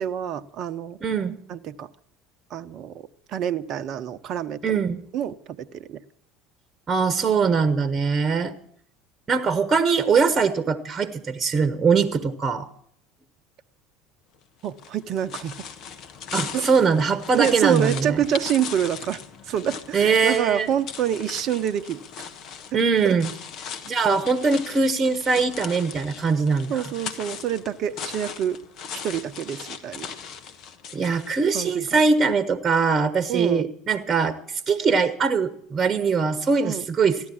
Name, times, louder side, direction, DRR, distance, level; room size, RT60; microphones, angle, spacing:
voice 1, 0.0-1.0 1.5-1.9 2.5-4.8 5.1-6.0 14.6-15.6 16.5-16.7 17.3-22.3 22.7-22.8 23.0-23.2 26.7-28.6 29.0-30.1 31.5-32.0 33.3-33.7 36.6-36.8, right 9 dB, 50° right, 11 dB, 0.8 m, -27 dB
voice 2, 1.0-1.3 4.6-5.0 6.9-8.5 9.3-12.7 16.3-18.2 19.9-20.7 22.7-23.3 23.8-26.8 30.9-37.3, right 5 dB, 30° right, 12 dB, 1.3 m, -22 dB
sound 1, 14.6-31.8, left 7 dB, 50° left, 1.3 m, -39 dB
15.0 x 11.5 x 7.2 m, 0.65 s
figure-of-eight pair, 70°, 0 cm